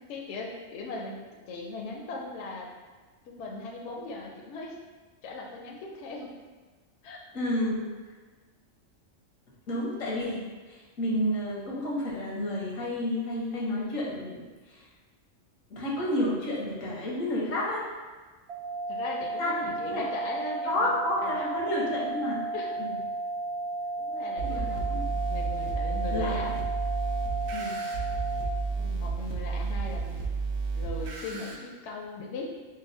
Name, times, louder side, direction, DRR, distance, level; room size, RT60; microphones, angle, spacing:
voice 1, 0.1-1.2 1.5-2.7 3.3-4.8 5.2-6.3 7.0-7.2 18.9-21.5 22.5-22.7 24.0-26.5 28.7-32.5, left 3 dB, 70° left, 0 dB, 0.8 m, -39 dB
voice 2, 7.3-7.9 9.7-14.4 14.7-14.8 15.7-17.9 19.4-19.5 19.9-20.0 20.6-22.4 22.8-22.9 24.4-24.6 24.9-25.0 26.1-26.5 27.5-27.8, left 1 dB, 90° left, -4 dB, 1.2 m, -30 dB
sound 1, 18.5-28.5, right 2 dB, 60° right, 0.7 m, -33 dB
sound 2, 24.4-31.5, right 4 dB, 90° right, 1.1 m, -32 dB
5.3 x 2.2 x 2.6 m, 1.3 s
omnidirectional pair, 1.3 m